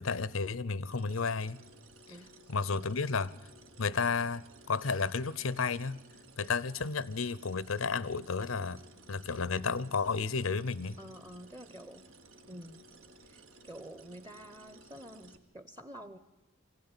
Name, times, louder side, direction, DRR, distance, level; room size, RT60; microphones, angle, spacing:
voice 1, 0.0-1.6 2.5-3.3 3.8-6.0 6.4-8.8 9.1-11.0, left 4 dB, 90° left, 0.8 m, -32 dB
sound 1, 0.9-15.4, right 2 dB, 90° right, 1.8 m, -57 dB
voice 2, 2.1-2.8 11.0-12.1 12.5-12.9 13.2-16.2, equal, 20° right, 0.8 m, -49 dB
23.5 x 16.0 x 9.8 m
head